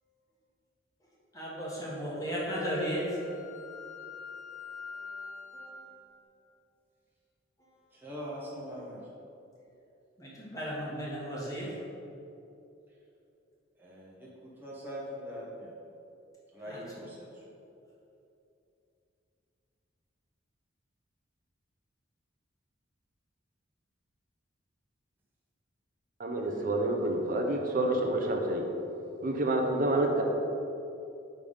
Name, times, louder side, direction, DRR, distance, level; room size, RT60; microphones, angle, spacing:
voice 1, 1.3-3.4 4.9-6.0 7.6-7.7 10.2-11.9 16.6-17.0, equal, 15° left, -6 dB, 1.2 m, -36 dB
Wind instrument woodwind instrument, 2.4-5.8, left 5 dB, 65° left, 1.2 m, -45 dB
voice 2, 7.9-9.0 13.8-14.3 14.6-15.7 16.5-17.3, equal, 10° right, -6 dB, 0.9 m, -42 dB
voice 3, 26.2-28.6 29.2-30.2, right 1 dB, 45° right, 2 dB, 0.6 m, -28 dB
5.0 x 3.4 x 5.4 m, 2.7 s
head